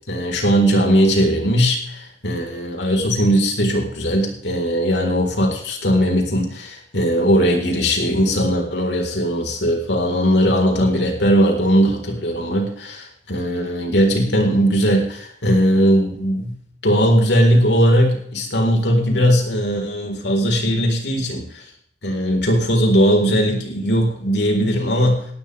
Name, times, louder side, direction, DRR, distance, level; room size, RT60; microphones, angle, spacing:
voice 1, 0.1-16.6 16.8-21.6 22.0-25.3, equal, 90° left, 2 dB, 3.9 m, -18 dB
18.0 x 12.5 x 3.3 m, 0.64 s
head